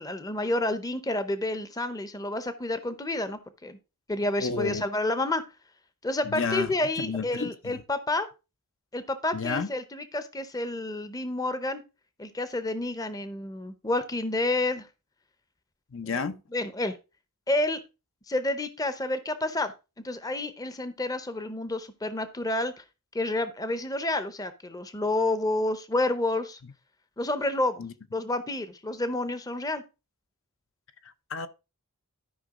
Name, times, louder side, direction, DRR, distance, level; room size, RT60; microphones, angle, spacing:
voice 1, 0.0-3.8 4.1-5.4 6.0-8.3 8.9-11.8 12.2-14.9 16.5-17.0 17.5-17.8 18.3-19.7 20.0-22.8 23.1-26.6 27.2-27.8 28.1-29.8, left 2 dB, 15° left, 0.7 m, -29 dB
voice 2, 4.4-4.8 6.2-7.8 9.3-9.7 15.9-16.4 27.8-27.9 31.0-31.5, left 5 dB, 60° left, 0.7 m, -31 dB
12.5 x 5.3 x 3.7 m
head